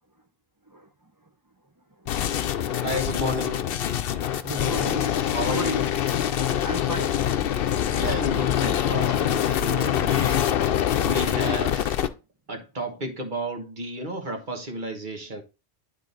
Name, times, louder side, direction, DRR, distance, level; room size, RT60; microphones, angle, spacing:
sound 1, 2.1-12.1, left 10 dB, 70° left, 0.8 m, -24 dB
voice 1, 2.8-3.6 5.3-5.9 6.4-6.7 7.9-10.6 11.0-12.0 12.5-15.4, right 1 dB, 50° right, 1.4 m, -32 dB
voice 2, 4.4-5.1 5.5-5.8 6.6-7.5, right 1 dB, 25° right, 0.6 m, -34 dB
10.5 x 3.7 x 4.0 m
omnidirectional pair, 1.0 m